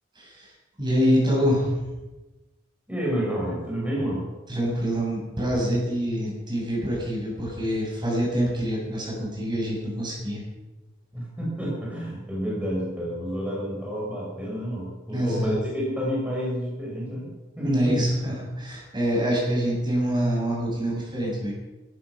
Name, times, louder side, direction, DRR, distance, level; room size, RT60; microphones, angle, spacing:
voice 1, 0.2-1.7 4.5-10.4 15.1-15.5 17.6-21.5, equal, 25° right, -3 dB, 7.1 m, -25 dB
voice 2, 2.9-4.3 11.1-18.1, equal, 5° right, -5 dB, 5.9 m, -29 dB
17.0 x 13.5 x 6.2 m, 1.1 s
head